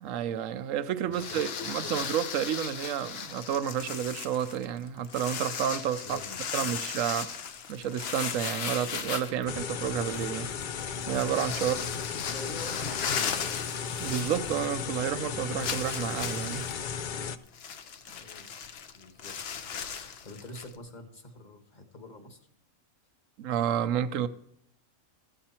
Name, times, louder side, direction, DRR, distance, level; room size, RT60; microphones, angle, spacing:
voice 1, 0.0-6.2 6.5-7.4 7.7-10.5 11.1-11.8 14.0-16.7 23.4-24.3, right 9 dB, 70° right, 1.0 m, -30 dB
sound 1, 1.1-14.9 15.2-15.3 15.6-20.8, left 7 dB, 55° left, 0.9 m, -37 dB
voice 2, 1.1-2.2 6.0-6.7 9.9-10.1 11.6-13.6 18.1-18.5 18.9-19.6 20.2-22.4, left 2 dB, 35° left, 1.4 m, -45 dB
sound 2, 9.5-17.4, left 6 dB, 75° left, 0.4 m, -35 dB
14.5 x 7.8 x 4.3 m
omnidirectional pair, 1.5 m